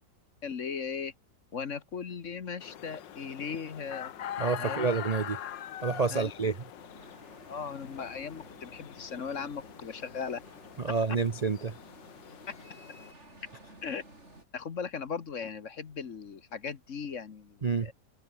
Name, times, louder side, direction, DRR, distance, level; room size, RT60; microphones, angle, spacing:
voice 1, 0.4-1.1 1.5-4.1 4.6-4.9 6.1-6.3 7.5-10.4 13.8-14.0 14.5-17.9, left 6 dB, 45° left, 1.5 m, -38 dB
sound 1, 2.6-13.1, left 10 dB, 70° left, 1.8 m, -43 dB
voice 2, 4.4-5.4 5.8-6.6 10.8-11.8 17.6-17.9, right 4 dB, 70° right, 0.3 m, -28 dB
sound 2, 6.8-14.4, right 1 dB, 35° right, 6.8 m, -54 dB
omnidirectional pair, 2.0 m